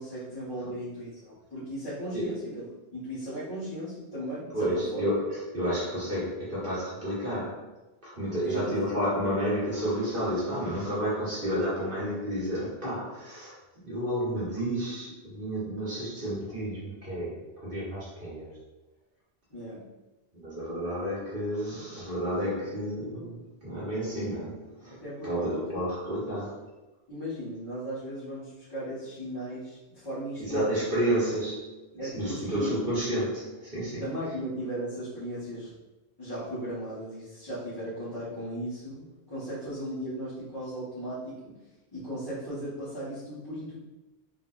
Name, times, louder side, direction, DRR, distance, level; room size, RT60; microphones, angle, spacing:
voice 1, 0.0-2.6 2.9-5.0 8.4-8.7 19.5-19.9 22.5-22.7 23.1-23.3 24.9-25.8 27.1-30.9 32.0-32.7 34.0-35.7 36.2-41.5 41.9-43.8, right 1 dB, 25° left, -14 dB, 1.1 m, -37 dB
voice 2, 2.1-2.5 4.5-7.7 8.0-13.6 13.8-18.6 20.3-25.0 25.2-26.6 30.4-31.7 32.1-34.0, equal, 60° right, -8 dB, 1.4 m, -31 dB
3.7 x 2.8 x 2.4 m, 1.1 s
omnidirectional pair, 1.1 m